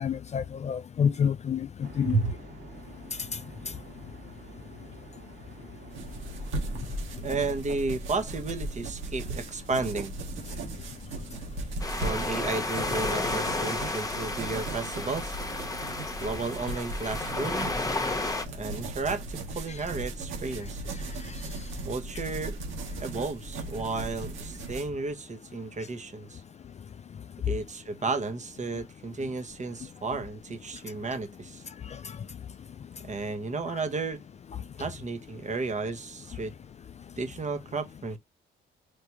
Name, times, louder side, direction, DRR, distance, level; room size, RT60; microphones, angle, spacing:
voice 1, 0.0-2.2 21.2-21.4 31.9-32.2 33.7-33.8, left 7 dB, 35° left, 0.4 m, -29 dB
sound 1, 1.8-7.0, right 5 dB, 70° right, 2.4 m, -49 dB
sound 2, 5.9-24.9, right 2 dB, 90° right, 1.6 m, -37 dB
voice 2, 7.2-10.1 12.0-15.4 16.2-17.9 18.5-21.0 21.8-22.6 23.0-26.4 27.5-31.6 33.0-34.2 34.8-36.5 37.2-38.2, right 3 dB, 35° right, 1.2 m, -33 dB
sound 3, 11.8-18.4, left 2 dB, 15° left, 1.2 m, -32 dB
4.7 x 3.3 x 2.9 m
cardioid pair, 90°, 20 cm